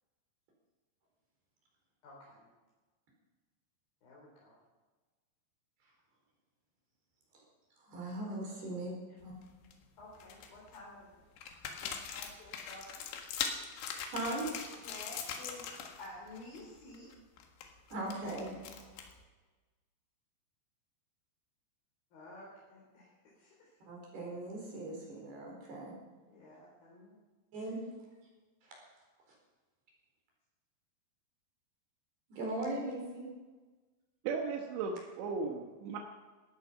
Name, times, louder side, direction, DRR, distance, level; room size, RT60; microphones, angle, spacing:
voice 1, 2.0-2.4 4.0-4.6 8.7-8.8 10.0-11.0 11.8-13.0 14.8-15.7 16.0-17.1 22.1-23.7 26.3-27.2, left 2 dB, 55° left, -4 dB, 5.0 m, -52 dB
voice 2, 7.8-8.9 9.2-9.3 14.1-14.5 17.9-18.5 23.9-25.9 27.5-27.8 28.6-29.4 32.3-33.3, right 2 dB, 60° right, -2 dB, 6.4 m, -39 dB
sound 1, 9.2-9.7 10.2-10.8 11.4-16.1 16.3-16.6 16.9-19.2, left 7 dB, 90° left, 4.2 m, -41 dB
voice 3, 34.2-36.0, right 4 dB, 75° right, 1 dB, 3.4 m, -36 dB
18.0 x 14.0 x 5.7 m, 1.3 s
omnidirectional pair, 5.3 m